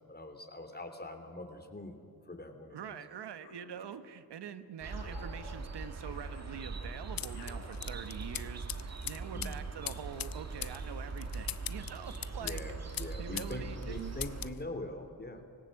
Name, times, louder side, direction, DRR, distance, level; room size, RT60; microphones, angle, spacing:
voice 1, 0.0-2.9 9.3-9.6 12.4-15.4, left 1 dB, 25° left, 6 dB, 3.1 m, -43 dB
voice 2, 2.7-12.6 13.2-13.9, right 8 dB, 80° right, 11 dB, 1.2 m, -45 dB
sound 1, 3.4-4.4 4.9-8.5, left 4 dB, 85° left, 2.6 m, -55 dB
sound 2, 4.8-14.5, right 3 dB, 40° right, 1.8 m, -41 dB
sound 3, 7.2-13.6 13.8-14.6, left 11 dB, 60° left, 0.7 m, -42 dB
20.0 x 18.0 x 7.7 m, 2.6 s
cardioid pair, 55°, 40 cm